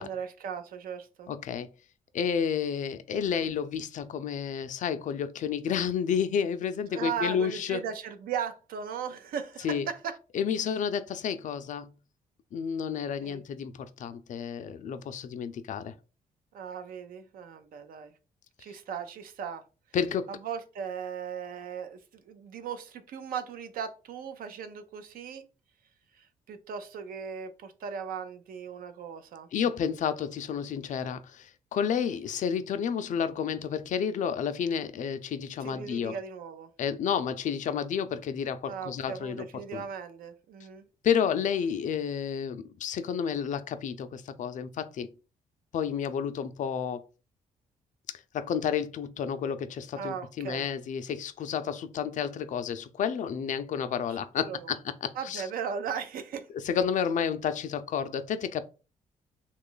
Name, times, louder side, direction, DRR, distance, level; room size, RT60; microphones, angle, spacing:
voice 1, 0.0-1.3 6.9-10.2 13.2-13.4 16.5-18.1 18.6-19.6 20.3-25.5 26.2-29.5 35.6-36.7 38.7-40.8 50.0-50.7 54.1-54.7 55.2-56.5, right 7 dB, 75° right, 0.5 m, -37 dB
voice 2, 1.3-1.7 2.1-7.8 9.6-9.9 10.3-11.9 12.5-15.9 19.9-20.3 29.5-36.2 36.8-39.5 39.7-39.8 41.0-45.1 45.7-47.0 48.3-55.5 56.5-58.6, left 7 dB, 55° left, 0.4 m, -31 dB
3.0 x 2.3 x 3.8 m
cardioid pair, 100°, 15 cm